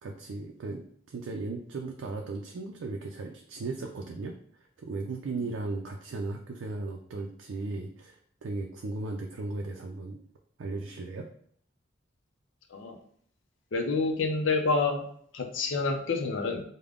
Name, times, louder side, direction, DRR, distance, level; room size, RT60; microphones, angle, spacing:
voice 1, 0.0-4.3 4.8-8.2 8.4-10.2 10.6-11.3, right 3 dB, 85° right, 1 dB, 0.4 m, -36 dB
voice 2, 13.7-15.0 15.3-16.6, left 3 dB, 80° left, 3 dB, 0.5 m, -28 dB
3.6 x 2.1 x 3.4 m, 0.62 s
head